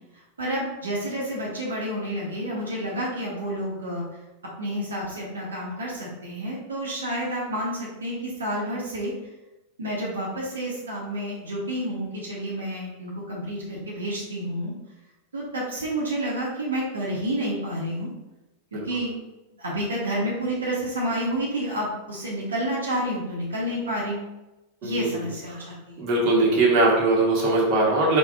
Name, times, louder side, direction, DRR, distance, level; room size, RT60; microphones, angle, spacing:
voice 1, 0.1-4.0 4.6-9.1 9.8-14.7 15.3-18.1 18.7-19.2 19.6-24.3 24.8-26.0, right 1 dB, 70° right, -5 dB, 0.8 m, -29 dB
voice 2, 24.8-25.2 26.0-28.2, right 2 dB, 35° right, -4 dB, 1.0 m, -21 dB
4.7 x 2.2 x 2.3 m, 1.0 s
figure-of-eight pair, 90°, 0 cm